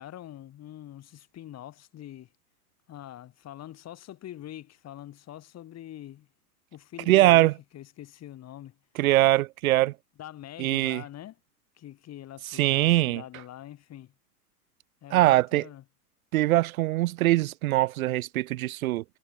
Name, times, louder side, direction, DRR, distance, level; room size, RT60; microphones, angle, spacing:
voice 1, 0.0-2.3 2.9-6.3 6.7-8.8 10.2-11.4 11.8-14.1 15.0-15.8, left 12 dB, 35° left, 6.0 m, -44 dB
voice 2, 7.1-7.5 9.0-9.9 10.6-11.0 12.5-13.2 15.1-15.6 16.3-19.0, right 16 dB, 60° right, 0.5 m, -22 dB
hypercardioid pair, 95°, 47 cm